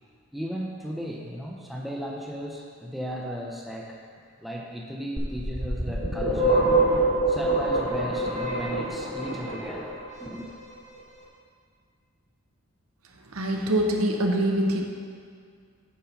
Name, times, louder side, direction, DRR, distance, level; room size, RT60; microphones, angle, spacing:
voice 1, 0.3-4.0 4.4-10.6, equal, ahead, -2 dB, 0.6 m, -35 dB
sound 1, 5.2-10.0, right 2 dB, 30° right, 1.3 m, -25 dB
voice 2, 13.3-14.8, right 1 dB, 75° right, 2 dB, 0.8 m, -24 dB
8.6 x 4.2 x 5.7 m, 2.1 s
head